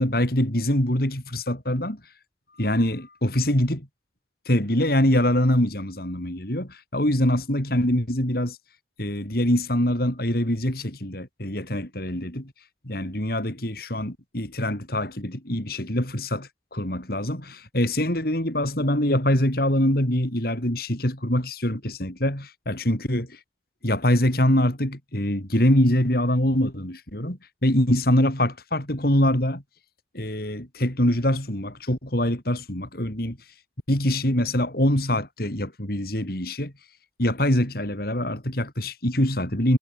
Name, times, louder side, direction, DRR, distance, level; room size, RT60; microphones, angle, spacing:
voice 1, 0.0-2.0 2.6-3.9 4.5-8.6 9.0-12.5 12.8-23.4 23.8-29.6 30.1-33.4 33.9-36.7 37.2-39.8, left 1 dB, 55° left, 4.8 m, -24 dB
head